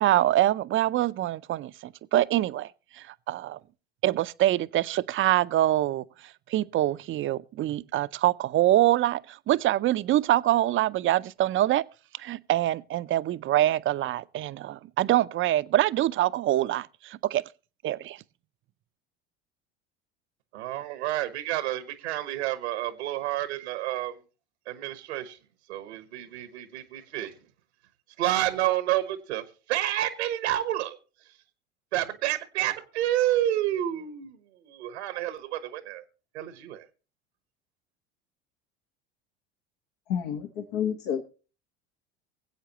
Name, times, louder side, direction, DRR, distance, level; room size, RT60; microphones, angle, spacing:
voice 1, 0.0-3.6 4.0-6.0 6.5-11.8 12.2-17.4 17.8-18.2, right 14 dB, 40° right, 0.6 m, -25 dB
voice 2, 20.5-24.2 24.7-25.4 25.7-27.3 28.2-31.0 31.9-36.0 36.3-36.8, right 13 dB, 85° right, 1.2 m, -29 dB
voice 3, 40.1-41.3, left 8 dB, 75° left, 1.7 m, -29 dB
23.5 x 8.1 x 3.0 m
hypercardioid pair, 80°, 32 cm